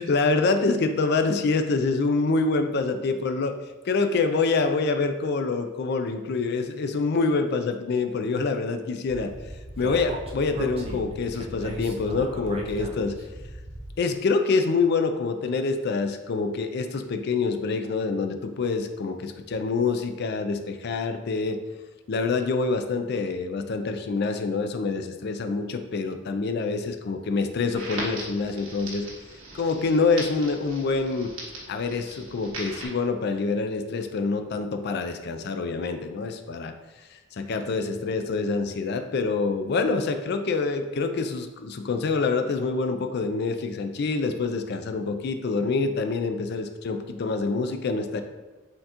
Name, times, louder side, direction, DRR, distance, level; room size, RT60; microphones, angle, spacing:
voice 1, 0.0-3.6 3.8-9.3 9.8-13.2 14.0-21.6 22.1-29.1 29.5-31.3 31.7-36.7 37.3-48.2, left 4 dB, 55° left, 7 dB, 0.4 m, -26 dB
Speech, 9.1-14.0, right 1 dB, 30° right, 0.5 m, -37 dB
Crackle, 27.8-32.9, right 2 dB, 80° right, 1.3 m, -39 dB
4.3 x 3.8 x 2.9 m, 1.2 s
head